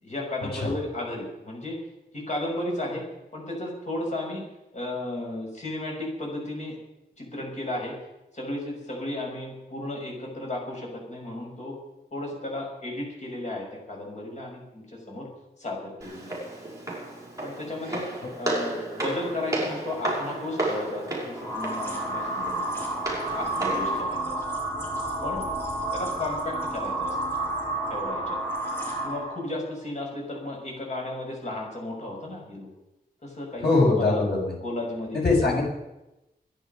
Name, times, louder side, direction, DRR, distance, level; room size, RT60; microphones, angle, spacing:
voice 1, 0.0-1.8 2.1-3.0 3.3-4.4 4.7-6.8 7.2-7.9 8.3-11.8 12.1-15.3 15.6-16.5 17.4-18.1 18.4-22.8 23.3-24.4 25.2-25.4 25.9-27.2 27.9-28.4 29.0-32.7 33.2-34.2 34.6-35.6, left 1 dB, 45° left, -1 dB, 6.3 m, -34 dB
Walk footsteps, 16.0-24.0, right 2 dB, 20° right, 6.2 m, -33 dB
sound 1, 21.4-29.4, right 1 dB, 15° left, 5.2 m, -30 dB
voice 2, 33.6-34.5 35.1-35.6, left 3 dB, 90° left, -2 dB, 7.1 m, -21 dB
24.0 x 10.5 x 5.5 m, 0.94 s
wide cardioid pair, 135°, 16 cm